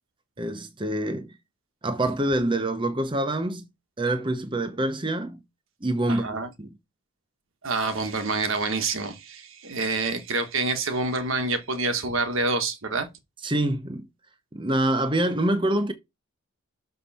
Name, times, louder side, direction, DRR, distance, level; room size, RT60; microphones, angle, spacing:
voice 1, 0.4-1.3 1.8-3.6 4.0-5.4 5.8-6.7 13.4-14.1 14.5-15.9, right 1 dB, 25° right, 0.8 m, -26 dB
voice 2, 6.1-6.5 7.6-13.1, right 3 dB, 70° right, 1.5 m, -27 dB
6.6 x 5.5 x 4.2 m
head